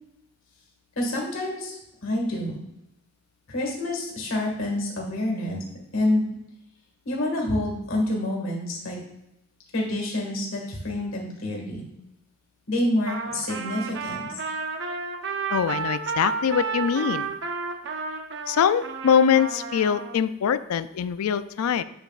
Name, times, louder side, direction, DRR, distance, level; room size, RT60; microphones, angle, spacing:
voice 1, 1.0-2.6 3.5-5.6 5.9-6.4 7.1-9.0 9.7-11.8 12.7-14.2, left 1 dB, 65° left, -1 dB, 1.9 m, -27 dB
Trumpet, 13.1-20.2, right 5 dB, 55° right, 0.7 m, -31 dB
voice 2, 15.5-17.3 18.5-21.8, left 7 dB, 85° left, 14 dB, 0.4 m, -23 dB
7.4 x 7.1 x 2.4 m, 0.88 s
head